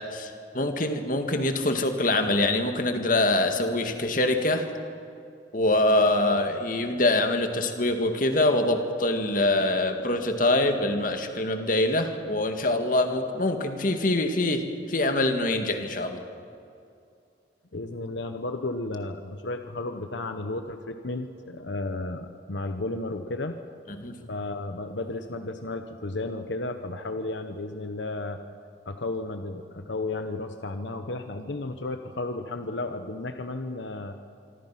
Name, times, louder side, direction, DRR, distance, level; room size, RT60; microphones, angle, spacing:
voice 1, 0.0-4.7 5.5-16.2 24.0-24.2, left 2 dB, 45° left, 5 dB, 2.1 m, -24 dB
voice 2, 17.7-23.6 24.3-28.4 28.9-34.2, left 2 dB, 85° left, 7 dB, 1.1 m, -33 dB
26.0 x 25.0 x 6.0 m, 2.5 s
head